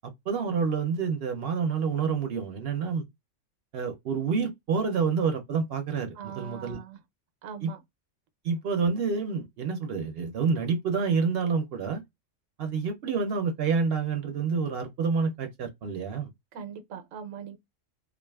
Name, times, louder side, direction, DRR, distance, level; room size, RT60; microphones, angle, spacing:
voice 1, 0.3-3.0 3.7-6.8 7.6-7.7 8.4-12.0 12.6-16.3, right 5 dB, 65° right, 0.7 m, -28 dB
voice 2, 6.2-7.0 7.4-7.8 16.5-17.6, right 8 dB, 90° right, 1.0 m, -41 dB
2.4 x 2.3 x 2.2 m
omnidirectional pair, 1.3 m